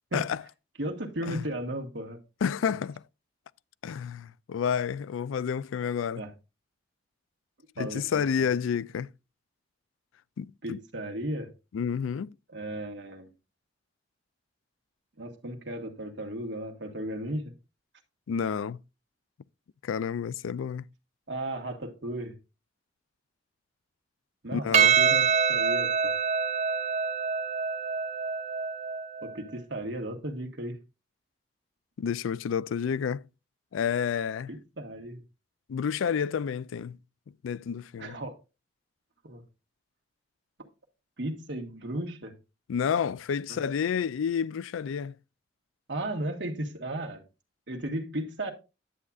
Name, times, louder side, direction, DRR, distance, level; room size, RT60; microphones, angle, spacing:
voice 1, 0.8-2.2 6.2-6.3 7.8-8.5 10.6-11.5 12.5-13.3 15.2-17.5 21.3-22.3 24.4-26.1 29.2-30.8 34.5-35.2 38.0-38.4 39.2-39.4 41.2-42.3 43.5-43.6 45.9-47.2 47.7-48.5, right 1 dB, 65° right, 1.6 m, -35 dB
voice 2, 2.4-3.0 3.8-6.2 7.8-9.1 10.4-10.8 11.7-12.3 18.3-18.8 19.8-20.9 24.5-24.9 32.0-33.2 33.7-34.5 35.7-37.0 37.4-38.1 42.7-45.1, left 7 dB, 90° left, 0.4 m, -30 dB
Percussion, 24.7-29.4, right 6 dB, 35° right, 0.9 m, -25 dB
10.0 x 8.3 x 2.4 m
head